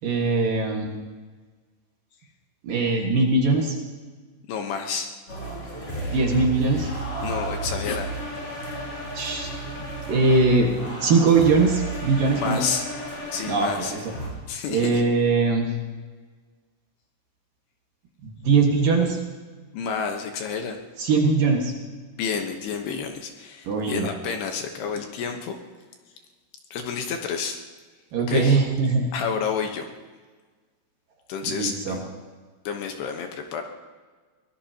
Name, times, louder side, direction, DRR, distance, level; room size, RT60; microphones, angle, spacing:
voice 1, 0.0-0.9 2.6-3.8 6.1-6.9 9.1-9.5 10.1-10.7 11.0-12.6 13.5-14.1 14.7-15.7 18.2-19.2 21.0-21.7 23.6-24.2 28.1-29.1 31.4-32.0, right 3 dB, 55° right, 0 dB, 3.0 m, -21 dB
voice 2, 4.5-5.1 7.2-8.1 12.4-12.9 13.3-13.9 14.5-15.0 19.7-20.8 22.2-25.6 26.7-27.6 28.3-28.6 29.1-29.9 31.3-32.0 32.6-33.6, left 6 dB, 70° left, 4 dB, 3.0 m, -30 dB
sound 1, 5.3-14.3, right 1 dB, 30° left, 5.9 m, -32 dB
23.5 x 19.0 x 2.9 m, 1.4 s
omnidirectional pair, 5.3 m